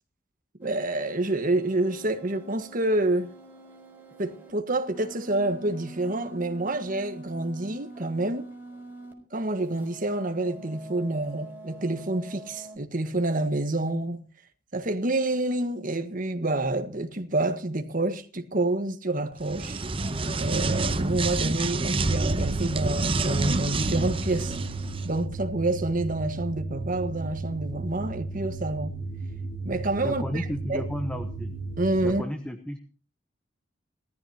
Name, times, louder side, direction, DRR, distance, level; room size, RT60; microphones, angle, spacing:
sound 1, 0.6-9.1 9.4-12.8, right 2 dB, 10° right, 4.2 m, -45 dB
voice 1, 0.6-3.3 4.2-8.5 9.3-14.2 14.7-19.8 20.4-24.5 25.0-28.9 29.6-30.9 31.8-32.2, right 2 dB, 45° right, 1.6 m, -28 dB
sound 2, 19.4-25.1, right 2 dB, 30° right, 0.9 m, -28 dB
sound 3, 22.1-32.1, right 3 dB, 60° left, 5.6 m, -35 dB
voice 2, 30.0-31.5 32.0-32.8, equal, 5° left, 1.3 m, -33 dB
20.0 x 14.0 x 3.0 m
head